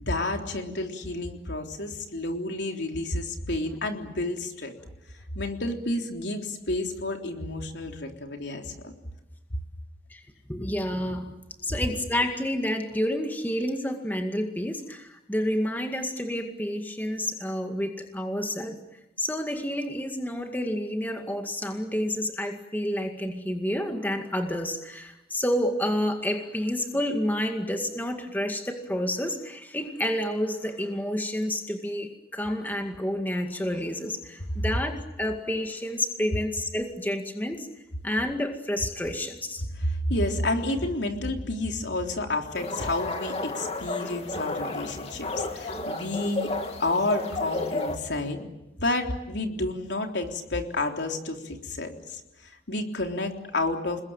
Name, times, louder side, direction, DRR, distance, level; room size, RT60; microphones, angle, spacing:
voice 1, 0.0-4.7 5.3-8.9 11.7-11.8 39.8-46.5 46.8-48.5 48.8-54.0, left 2 dB, 80° left, 3 dB, 3.6 m, -30 dB
voice 2, 10.5-11.4 11.6-18.8 19.2-37.7 38.0-39.6 44.0-44.2, left 1 dB, 10° left, 4 dB, 2.1 m, -29 dB
sound 1, 42.5-48.0, left 2 dB, 35° left, 2.8 m, -32 dB
29.0 x 21.5 x 9.0 m, 0.92 s
head